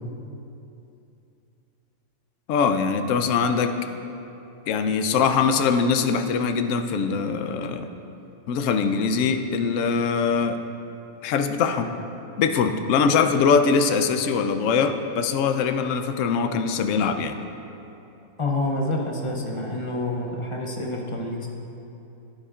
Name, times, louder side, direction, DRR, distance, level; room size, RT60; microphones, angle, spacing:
voice 1, 2.5-3.7 4.7-7.9 8.5-10.6 11.2-11.9 12.4-17.4, left 5 dB, 65° left, 8 dB, 0.9 m, -22 dB
voice 2, 18.4-21.5, left 2 dB, 30° left, 0 dB, 0.5 m, -28 dB
11.5 x 10.0 x 2.4 m, 2.8 s
omnidirectional pair, 1.5 m